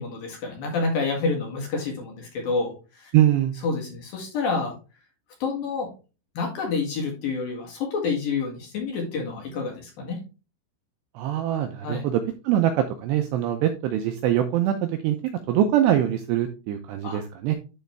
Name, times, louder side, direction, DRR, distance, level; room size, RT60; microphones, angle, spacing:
voice 1, 0.0-3.1 3.6-4.8 5.4-5.9 6.3-10.2 11.8-12.0 17.0-17.2, left 4 dB, 60° left, 0 dB, 3.1 m, -28 dB
voice 2, 3.1-3.6 11.2-15.2 15.5-17.6, right 11 dB, 85° right, 5 dB, 2.5 m, -23 dB
12.0 x 4.1 x 3.4 m, 0.32 s
omnidirectional pair, 5.6 m